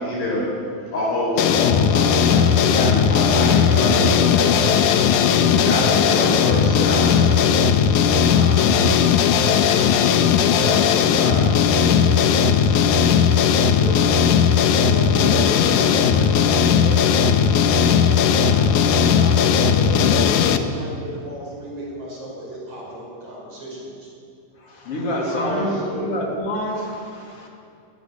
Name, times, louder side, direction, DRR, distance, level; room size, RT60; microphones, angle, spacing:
voice 1, 0.0-4.8 5.4-7.2 9.6-9.9 11.1-11.7 25.3-26.1, equal, 85° left, -9 dB, 7.6 m, -26 dB
sound 1, 1.4-20.6, left 7 dB, 70° left, 2.1 m, -17 dB
voice 2, 5.9-7.7 8.0-9.4 10.4-11.3 11.7-13.1 13.8-14.1 14.8-16.6 16.8-24.1 25.1-25.8, right 1 dB, 40° right, -3 dB, 5.8 m, -34 dB
voice 3, 24.6-27.5, equal, 40° left, 0 dB, 3.5 m, -28 dB
20.0 x 18.5 x 7.2 m, 2.4 s
omnidirectional pair, 4.2 m